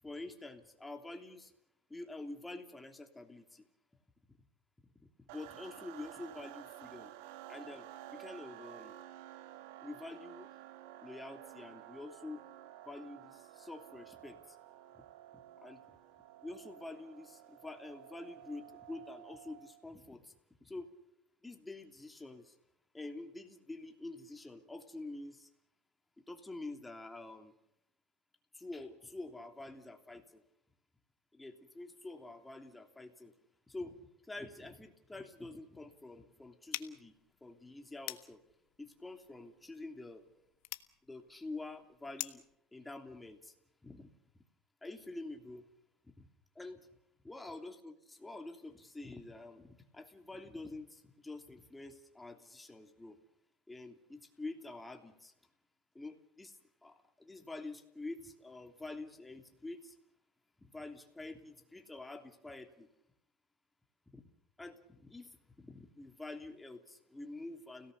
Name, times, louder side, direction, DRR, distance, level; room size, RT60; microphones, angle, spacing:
voice 1, 0.0-1.5 1.9-3.7 4.3-4.4 5.2-7.1 7.5-9.0 9.8-10.5 11.0-12.4 12.8-14.6 15.6-15.8 16.4-20.3 20.6-20.9 21.4-22.5 22.9-25.5 26.2-27.5 28.5-30.4 31.3-33.3 33.7-37.1 37.4-38.4 38.8-40.2 41.1-42.4 42.7-43.5 43.8-44.1 44.8-45.7 46.2-46.3 46.5-46.9 47.2-53.2 53.7-55.3 55.9-60.0 60.6-62.9 64.1-64.2 64.6-67.9, left 2 dB, 10° left, 5 dB, 3.1 m, -47 dB
sound 1, 5.3-19.8, right 13 dB, 75° right, 1.7 m, -52 dB
sound 2, 36.7-42.6, left 20 dB, 75° left, 1.4 m, -47 dB
30.0 x 18.0 x 6.8 m, 0.78 s
supercardioid pair, 100°, 0 cm